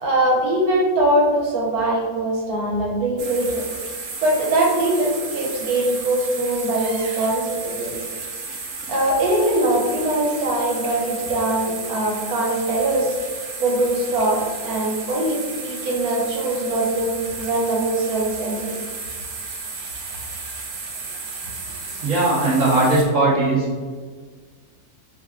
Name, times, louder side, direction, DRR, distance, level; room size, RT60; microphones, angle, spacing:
voice 1, 0.0-3.6 4.2-7.9 8.9-13.1 13.6-18.7, right 1 dB, 90° right, -2 dB, 1.3 m, -22 dB
sound 1, 3.2-23.0, right 4 dB, 65° right, 1.0 m, -33 dB
voice 2, 22.0-23.7, right 2 dB, 25° right, -8 dB, 1.2 m, -18 dB
4.7 x 2.5 x 2.4 m, 1.5 s
omnidirectional pair, 1.5 m